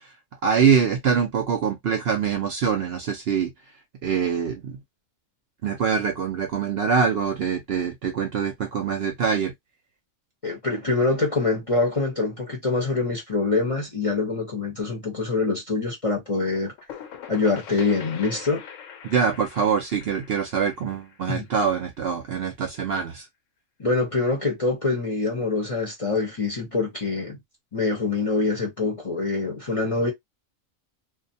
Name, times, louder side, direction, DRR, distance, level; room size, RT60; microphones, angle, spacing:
voice 1, 0.4-3.5 4.0-4.8 5.6-9.5 19.1-23.2, right 6 dB, 65° right, 0.6 m, -24 dB
voice 2, 10.4-16.7 17.3-18.6 21.3-21.5 23.8-27.4 27.7-30.1, left 3 dB, 35° left, 0.6 m, -25 dB
sound 1, 16.4-22.0, left 8 dB, 75° left, 1.0 m, -42 dB
2.5 x 2.1 x 2.6 m
omnidirectional pair, 1.4 m